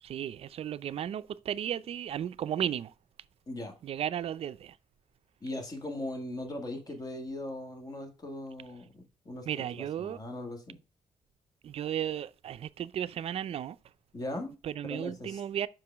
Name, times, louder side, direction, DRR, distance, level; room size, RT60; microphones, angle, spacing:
voice 1, 0.0-2.9 3.8-4.8 9.5-10.2 11.6-13.8 14.6-15.7, right 10 dB, 55° right, 0.4 m, -34 dB
voice 2, 5.4-10.8 14.1-14.6 14.8-15.4, left 1 dB, 30° left, 1.8 m, -39 dB
6.1 x 4.9 x 3.4 m
cardioid pair, 110°, 12 cm